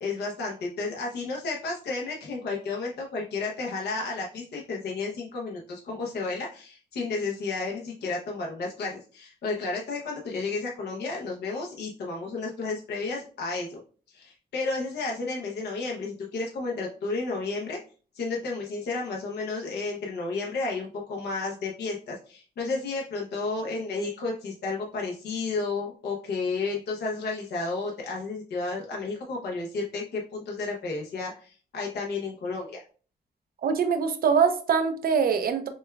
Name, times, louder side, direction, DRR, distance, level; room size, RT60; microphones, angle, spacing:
voice 1, 0.0-13.8 14.1-17.8 18.1-32.8, left 3 dB, 75° left, -1 dB, 0.8 m, -32 dB
voice 2, 33.6-35.7, right 6 dB, 60° right, 7 dB, 0.6 m, -23 dB
6.1 x 2.3 x 2.2 m, 0.40 s
wide cardioid pair, 140°, 17 cm